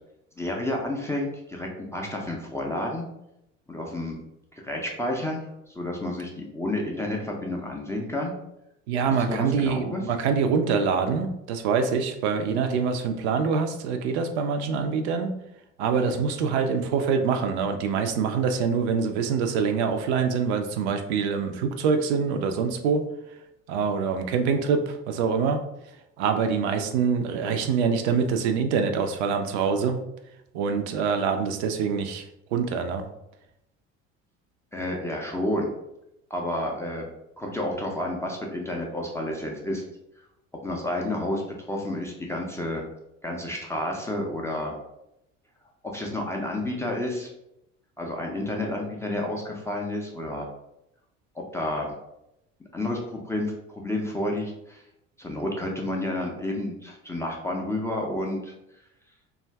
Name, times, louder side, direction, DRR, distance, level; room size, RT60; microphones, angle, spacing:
voice 1, 0.4-3.1 3.7-4.2 4.5-8.3 9.0-10.0 34.7-35.7 36.3-37.0 37.4-39.8 40.6-41.4 41.7-42.8 43.2-44.8 45.8-47.3 48.0-50.5 51.4-51.9 52.7-54.8 55.2-58.5, left 1 dB, 5° left, -1 dB, 0.4 m, -30 dB
voice 2, 8.9-15.4 15.8-23.0 23.7-25.6 26.2-30.0 30.5-33.1, right 5 dB, 60° right, 6 dB, 0.5 m, -25 dB
2.5 x 2.3 x 3.2 m, 0.84 s
figure-of-eight pair, 60°, 39 cm